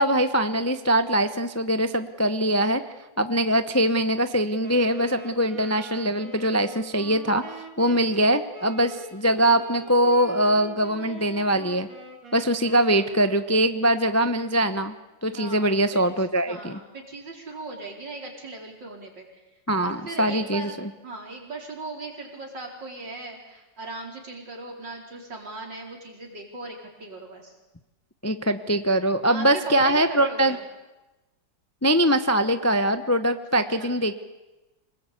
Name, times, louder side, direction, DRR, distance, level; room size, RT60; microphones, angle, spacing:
voice 1, 0.0-2.8 3.2-7.4 7.8-11.9 12.3-14.9 15.2-16.8 19.7-20.9 28.2-30.6 31.8-34.1, right 1 dB, 15° left, 9 dB, 0.6 m, -22 dB
Wind instrument woodwind instrument, 4.6-13.7, right 2 dB, 50° right, 3.6 m, -42 dB
voice 2, 15.3-19.4 19.8-27.6 29.3-30.6 33.5-34.0, right 2 dB, 75° right, 1 dB, 5.1 m, -39 dB
26.0 x 20.5 x 8.5 m, 1.0 s
omnidirectional pair, 2.0 m